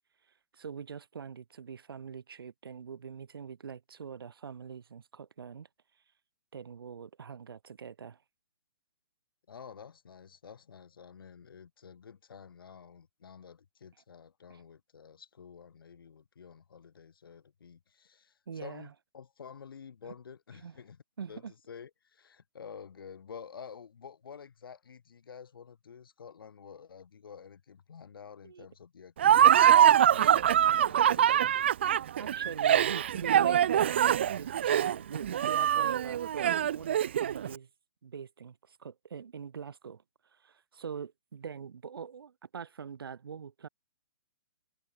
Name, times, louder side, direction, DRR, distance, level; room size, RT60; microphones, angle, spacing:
voice 1, 0.5-5.7 6.5-8.2 14.5-14.6 18.5-18.9 20.0-20.1 20.6-20.7 21.2-21.5 28.4-28.7 32.2-37.7 38.0-40.0 40.4-43.7, right 6 dB, 75° right, 3.2 m, -43 dB
voice 2, 9.5-21.0 21.3-31.6, left 7 dB, 70° left, 4.0 m, -50 dB
Laughter, 29.2-37.5, right 10 dB, 30° right, 0.4 m, -23 dB
hypercardioid pair, 175°, 12 cm